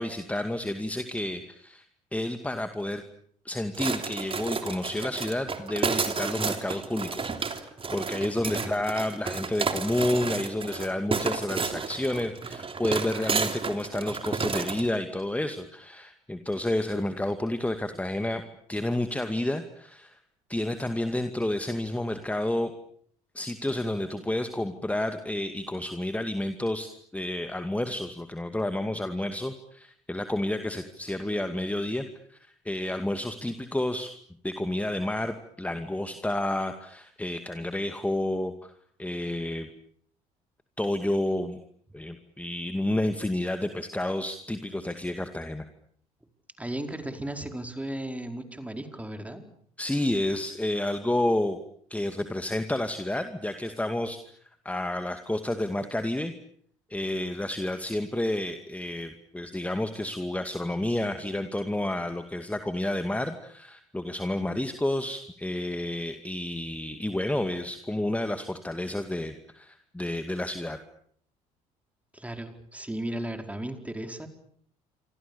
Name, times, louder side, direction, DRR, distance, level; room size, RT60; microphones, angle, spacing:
voice 1, 0.0-1.8 2.1-3.0 3.4-7.3 7.6-18.4 18.7-20.2 20.5-22.7 23.3-34.1 34.4-38.7 39.0-39.7 40.8-41.6 41.9-45.7 49.8-51.6 51.9-54.3 54.6-56.3 56.9-70.8, left 1 dB, 10° left, 8 dB, 2.3 m, -30 dB
sound 1, 3.7-14.9, right 5 dB, 30° right, 3.3 m, -31 dB
voice 2, 46.6-49.4 72.1-74.3, right 1 dB, 10° right, 6 dB, 4.7 m, -35 dB
28.0 x 25.0 x 7.1 m, 0.62 s
hypercardioid pair, 60°, 18 cm